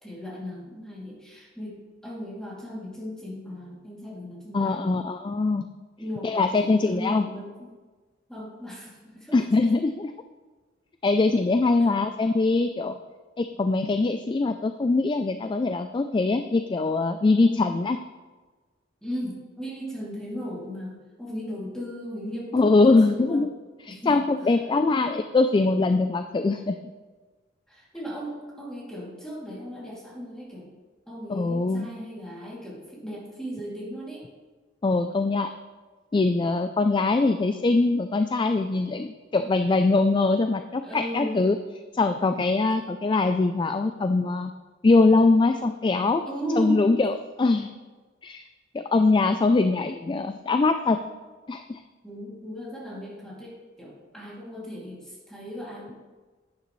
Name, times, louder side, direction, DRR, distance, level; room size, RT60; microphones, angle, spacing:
voice 1, 0.0-5.0 6.0-7.7 8.3-9.4 11.8-11.9 17.4-17.8 19.0-23.4 23.9-24.1 27.7-30.7 31.1-34.2 40.8-41.6 46.3-46.9 52.0-55.9, equal, 5° left, -6 dB, 2.5 m, -36 dB
voice 2, 4.5-5.6 6.2-7.3 9.3-10.1 11.0-13.0 13.4-18.0 22.5-23.5 23.8-26.7 31.3-31.9 34.8-35.5 36.1-41.6 41.9-44.5 44.8-46.2 46.6-47.7 48.2-48.4 48.7-51.0 51.5-51.8, left 3 dB, 25° left, 8 dB, 0.3 m, -22 dB
10.5 x 9.4 x 3.1 m, 1.3 s
head